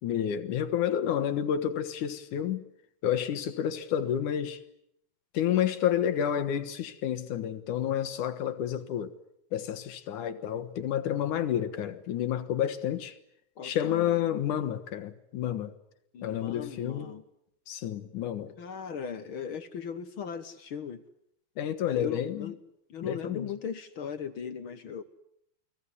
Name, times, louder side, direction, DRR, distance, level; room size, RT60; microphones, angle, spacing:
voice 1, 0.0-2.6 3.0-4.6 5.3-9.1 9.5-13.2 13.6-15.7 16.2-17.1 17.7-18.5 21.6-22.5 23.0-23.5, left 10 dB, 80° left, 3.0 m, -30 dB
voice 2, 13.6-14.2 16.1-17.2 18.6-21.0 21.8-22.6 22.9-25.0, left 7 dB, 55° left, 1.6 m, -38 dB
29.5 x 20.5 x 9.8 m
omnidirectional pair, 3.5 m